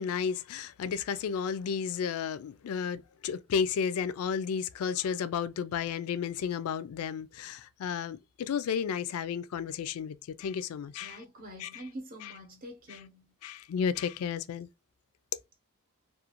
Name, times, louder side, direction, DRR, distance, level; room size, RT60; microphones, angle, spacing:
voice 1, 0.0-11.2 11.6-11.8 12.2-12.3 13.4-14.7, left 7 dB, 75° left, 0.3 m, -33 dB
voice 2, 11.0-13.3, equal, 45° right, 0.7 m, -45 dB
2.4 x 2.3 x 2.9 m
head